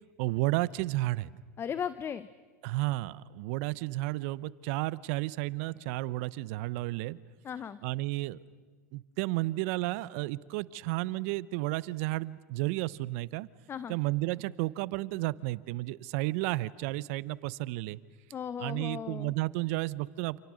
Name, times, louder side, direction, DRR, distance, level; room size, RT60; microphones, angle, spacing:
voice 1, 0.2-1.3 2.6-7.2 7.8-8.4 8.9-13.5 13.9-18.0 18.6-20.4, right 19 dB, 65° right, 20 dB, 0.8 m, -32 dB
voice 2, 1.6-2.3 7.4-7.8 13.7-14.0 18.3-19.3, left 8 dB, 30° left, 16 dB, 0.7 m, -36 dB
29.0 x 28.0 x 6.4 m, 1.4 s
hypercardioid pair, 95°, 8 cm